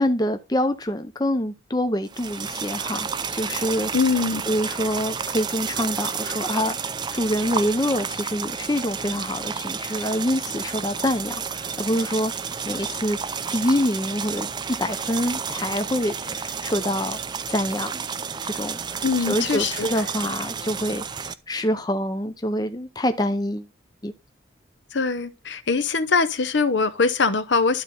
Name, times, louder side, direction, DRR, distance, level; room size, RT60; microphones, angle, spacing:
voice 1, 0.0-3.9 4.5-6.8 7.1-12.3 12.7-13.2 13.5-14.5 14.8-17.2 17.5-18.1 18.4-21.0 21.5-23.7 24.0-24.1, left 1 dB, 20° left, 0.6 m, -26 dB
sound 1, 2.1-21.3, right 6 dB, 20° right, 0.4 m, -31 dB
voice 2, 3.9-4.4 19.0-19.9 24.9-27.8, left 4 dB, 65° left, 0.8 m, -22 dB
12.0 x 4.1 x 3.8 m
head